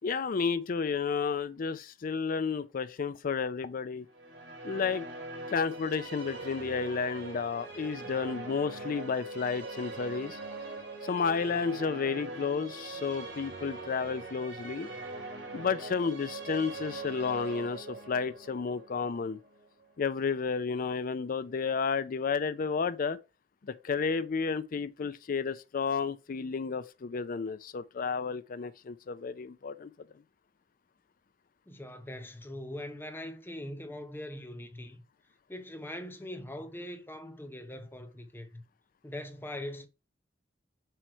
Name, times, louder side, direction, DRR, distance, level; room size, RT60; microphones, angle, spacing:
voice 1, 0.0-4.1 4.6-5.0 5.5-10.4 11.0-14.9 15.5-19.4 20.0-23.2 23.7-29.9, left 5 dB, 50° left, 0.4 m, -32 dB
sound 1, 4.1-20.2, right 2 dB, 70° right, 3.4 m, -42 dB
voice 2, 31.7-35.0 35.5-38.6 39.0-39.9, left 1 dB, 10° left, 0.7 m, -41 dB
7.7 x 3.1 x 4.4 m
head